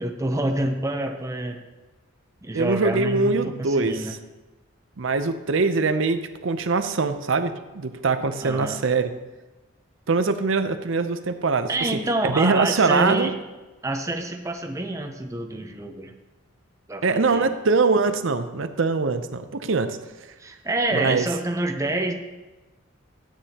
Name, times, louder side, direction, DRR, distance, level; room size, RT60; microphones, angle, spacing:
voice 1, 0.0-1.6 2.4-4.1 8.4-8.8 11.7-13.3 13.8-16.1 16.9-17.5 20.4-22.1, right 2 dB, 15° right, 4 dB, 0.6 m, -27 dB
voice 2, 2.5-4.0 5.0-9.1 10.1-11.9 12.2-13.3 17.0-20.0 20.9-21.2, right 4 dB, 65° right, 10 dB, 0.6 m, -23 dB
12.5 x 9.0 x 2.9 m, 1.2 s
head